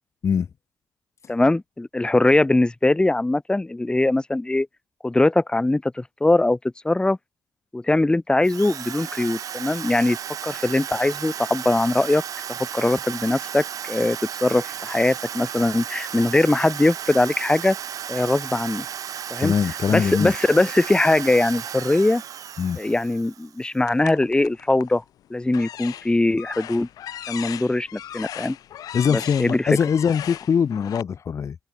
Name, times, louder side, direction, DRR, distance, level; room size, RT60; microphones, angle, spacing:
voice 1, 1.3-4.7 5.0-6.6 6.8-7.2 7.7-10.2 10.4-12.2 12.7-17.8 18.1-18.8 19.3-19.5 19.9-22.2 22.8-25.0 25.3-26.9 27.3-28.6 29.1-29.8, left 2 dB, 15° left, 1.0 m, -21 dB
Drill, 8.4-23.6, right 9 dB, 60° right, 1.9 m, -34 dB
voice 2, 19.4-20.3 22.6-22.8 28.9-31.6, left 7 dB, 50° left, 0.8 m, -22 dB
sound 1, 23.9-25.0 25.5-31.0, left 11 dB, 70° left, 1.5 m, -37 dB
supercardioid pair, 60°, 7 cm